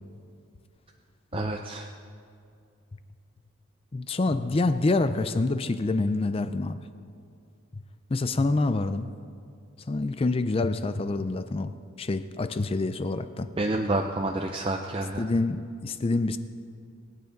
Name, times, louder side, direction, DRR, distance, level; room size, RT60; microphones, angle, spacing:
voice 1, 1.3-1.9 13.6-15.2, right 2 dB, 25° right, 3 dB, 0.5 m, -28 dB
voice 2, 3.9-6.8 8.1-9.1 9.9-13.5 15.2-16.4, left 2 dB, 25° left, 11 dB, 0.4 m, -27 dB
24.5 x 9.4 x 3.9 m, 2.4 s
head